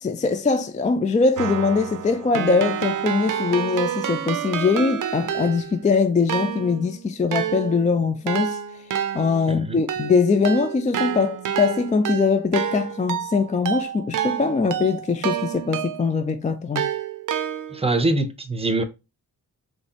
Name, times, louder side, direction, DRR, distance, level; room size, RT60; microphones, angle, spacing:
voice 1, 0.0-8.6 9.1-16.9, left 4 dB, 20° left, 0.3 m, -22 dB
Keyboard (musical), 1.4-5.9 6.3-16.2 16.8-18.0, right 9 dB, 55° right, 0.6 m, -29 dB
voice 2, 9.5-9.8 17.7-18.8, right 2 dB, 15° right, 0.7 m, -23 dB
4.4 x 3.1 x 2.9 m
wide cardioid pair, 110°, 37 cm